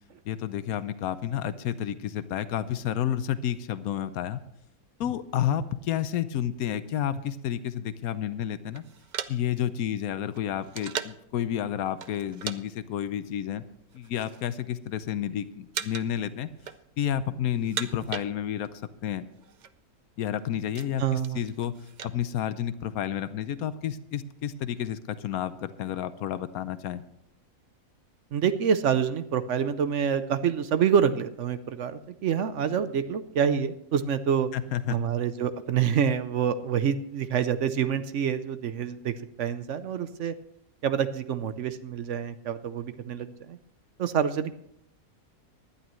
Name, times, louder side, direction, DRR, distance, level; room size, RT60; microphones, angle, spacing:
voice 1, 0.2-4.4 5.0-8.8 9.3-13.6 13.9-16.5 17.0-19.2 20.2-21.8 22.0-27.0 34.5-35.0, left 10 dB, 85° left, 13 dB, 1.1 m, -30 dB
sound 1, 8.7-11.3 12.0-12.6 12.9-13.1 13.8-14.5 14.8-15.3 15.7-16.2 16.5-17.2 17.5-18.8 19.1-19.2 19.4-19.7 20.2-22.2, right 8 dB, 85° right, 0.4 m, -38 dB
voice 2, 21.0-21.4 28.3-34.5 34.9-40.3 40.8-43.6 44.0-44.6, right 8 dB, 65° right, 11 dB, 0.9 m, -27 dB
19.0 x 11.5 x 3.1 m, 0.76 s
omnidirectional pair, 1.5 m